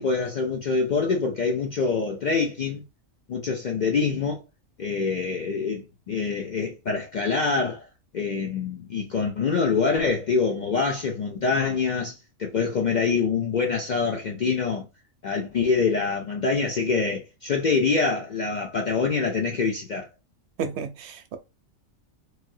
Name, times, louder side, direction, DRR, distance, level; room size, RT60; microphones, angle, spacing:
voice 1, 0.0-2.8 3.3-4.4 4.8-7.9 8.1-14.9 15.2-20.1, left 4 dB, 65° left, 0.4 m, -25 dB
voice 2, 20.6-21.4, right 6 dB, 65° right, 0.8 m, -32 dB
3.2 x 2.3 x 2.6 m
omnidirectional pair, 1.3 m